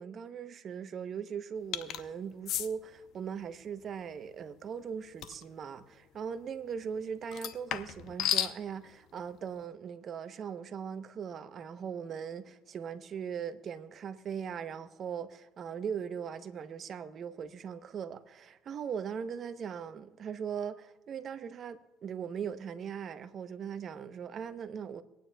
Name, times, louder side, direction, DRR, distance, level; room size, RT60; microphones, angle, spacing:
voice 1, 0.0-25.0, right 7 dB, 50° right, 0.8 m, -39 dB
sound 1, 1.7-2.0 2.5-2.7 5.2-5.4 7.3-8.6, left 11 dB, 70° left, 0.7 m, -32 dB
25.0 x 9.2 x 2.3 m
supercardioid pair, 90°, 0 cm